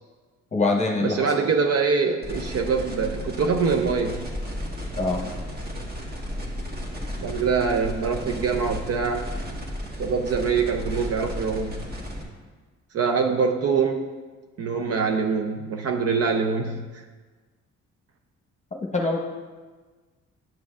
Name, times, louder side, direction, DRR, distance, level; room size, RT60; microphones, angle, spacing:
voice 1, 0.5-1.3 5.0-5.2 18.7-19.2, left 3 dB, 25° left, -1 dB, 1.0 m, -24 dB
voice 2, 1.0-4.2 7.2-9.3 10.0-11.8 12.9-14.0 14.6-17.0, right 5 dB, 55° right, 4 dB, 0.6 m, -24 dB
sound 1, 2.2-12.2, equal, 30° right, 1.5 m, -34 dB
10.5 x 6.1 x 2.4 m, 1.4 s
cardioid pair, 90°, 30 cm